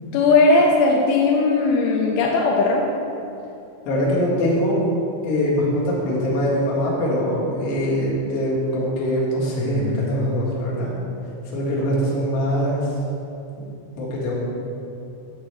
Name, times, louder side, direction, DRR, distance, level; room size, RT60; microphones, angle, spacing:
voice 1, 0.1-2.8, left 3 dB, 85° left, -1 dB, 2.9 m, -17 dB
voice 2, 3.9-4.8 5.2-11.0 11.5-12.9 13.6-13.7 14.0-14.3, equal, 65° left, -6 dB, 3.6 m, -22 dB
10.0 x 8.1 x 3.3 m, 2.7 s
omnidirectional pair, 6.0 m